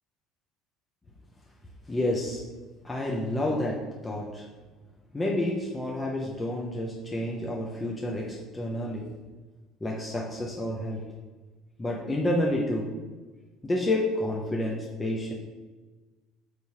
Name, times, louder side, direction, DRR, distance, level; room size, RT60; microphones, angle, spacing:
voice 1, 1.9-2.4 2.8-3.8 4.0-4.4 5.1-9.1 9.8-11.0 11.8-12.9 13.6-15.3, left 1 dB, 20° left, -2 dB, 0.5 m, -29 dB
3.6 x 2.7 x 2.9 m, 1.3 s
hypercardioid pair, 65°, 0 cm